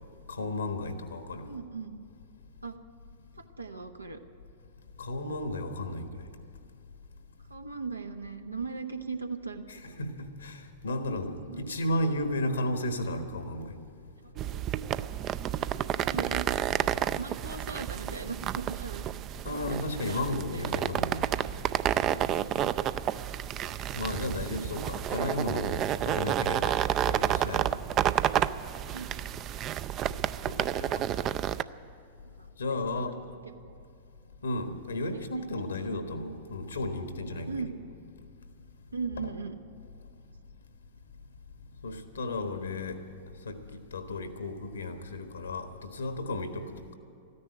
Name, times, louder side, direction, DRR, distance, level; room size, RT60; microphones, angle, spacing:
voice 1, 0.3-1.5 5.0-6.3 9.7-13.7 19.4-21.3 23.9-26.8 27.1-27.7 30.5-31.3 32.6-33.2 34.4-37.7 39.2-39.3 41.8-43.0 43.4-46.7, left 1 dB, 75° left, 1.3 m, -34 dB
voice 2, 1.4-2.0 2.6-2.8 3.6-4.2 7.5-10.0 11.4-11.8 14.2-14.4 16.0-16.7 17.2-19.1 19.5-20.8 22.1-22.7 28.9-29.2 32.4-32.5 32.9-33.8 35.0-35.5 35.8-35.9 37.5-37.8 38.9-39.6, right 4 dB, 85° right, 0.9 m, -39 dB
sound 1, 14.4-31.6, right 11 dB, 35° right, 0.4 m, -30 dB
14.0 x 10.0 x 9.8 m
figure-of-eight pair, 95°, 0 cm